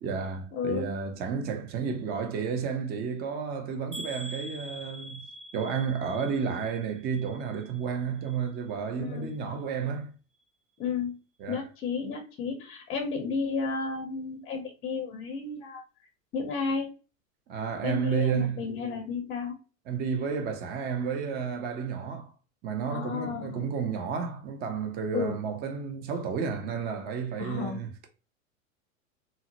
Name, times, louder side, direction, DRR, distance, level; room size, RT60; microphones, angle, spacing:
voice 1, 0.0-5.3 5.5-10.1 11.4-11.6 17.5-18.6 19.9-22.3 22.6-28.1, right 6 dB, 25° right, 0.5 m, -31 dB
voice 2, 0.5-0.9 9.0-9.3 10.8-11.2 11.5-15.8 16.3-16.9 17.8-19.6 22.9-23.7 25.1-25.4 27.4-27.8, left 5 dB, 20° left, 0.6 m, -32 dB
sound 1, 3.9-7.9 8.2-8.8 9.3-9.4 9.7-9.8, right 1 dB, 55° right, 1.7 m, -44 dB
3.8 x 2.0 x 2.8 m
hypercardioid pair, 115°, 42 cm